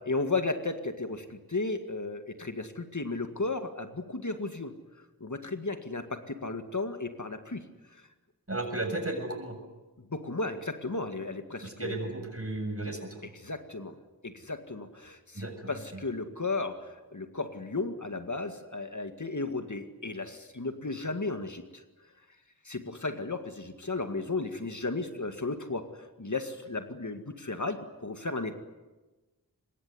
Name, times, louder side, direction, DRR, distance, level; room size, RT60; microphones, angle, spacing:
voice 1, 0.0-4.7 5.2-8.1 10.0-12.0 13.3-14.0 14.2-21.8 22.6-28.5, left 3 dB, 50° left, 7 dB, 2.1 m, -34 dB
voice 2, 8.5-9.6 11.6-13.1 15.3-15.7, right 2 dB, 35° right, 5 dB, 7.1 m, -34 dB
25.0 x 21.5 x 9.7 m, 1.2 s
wide cardioid pair, 45°, 38 cm